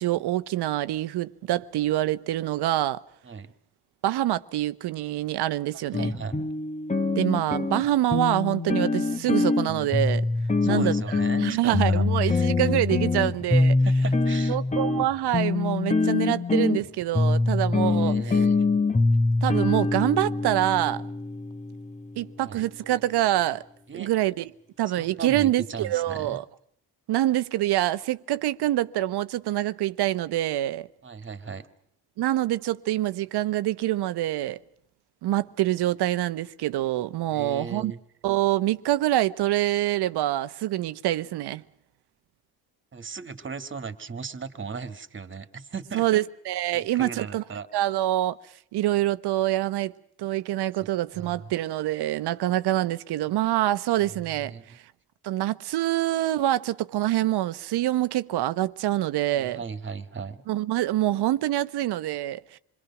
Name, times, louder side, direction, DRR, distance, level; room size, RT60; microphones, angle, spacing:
voice 1, 0.0-3.0 4.0-6.1 7.2-10.2 10.6-10.9 11.4-13.8 14.5-18.2 19.4-21.0 22.2-23.6 23.9-24.5 24.8-26.4 27.1-30.9 32.2-34.6 35.2-37.9 38.2-41.6 45.9-47.4 47.7-48.4 48.7-49.9 50.2-54.5 55.2-59.6 60.5-62.6, right 14 dB, 80° right, 1.1 m, -25 dB
sound 1, 5.9-22.2, left 3 dB, 20° left, 1.4 m, -24 dB
voice 2, 5.9-6.4 10.6-12.5 13.8-14.6 17.8-18.6 22.4-22.6 23.9-24.1 25.0-26.4 31.0-31.7 37.3-38.0 42.9-46.1 46.7-47.7 51.1-51.5 54.1-54.8 59.3-60.4, right 5 dB, 30° right, 2.1 m, -37 dB
27.5 x 22.0 x 6.0 m
cardioid pair, 110°, 39 cm